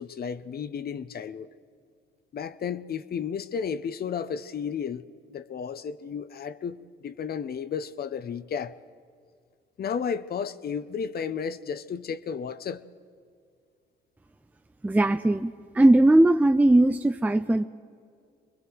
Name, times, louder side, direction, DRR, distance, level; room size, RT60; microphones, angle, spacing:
voice 1, 0.0-1.5 2.3-5.0 5.3-8.7 9.8-12.8, left 7 dB, 50° left, 0.8 m, -33 dB
voice 2, 14.8-17.6, right 1 dB, 10° right, 0.5 m, -19 dB
26.0 x 22.0 x 4.6 m
cardioid pair, 90°, 20 cm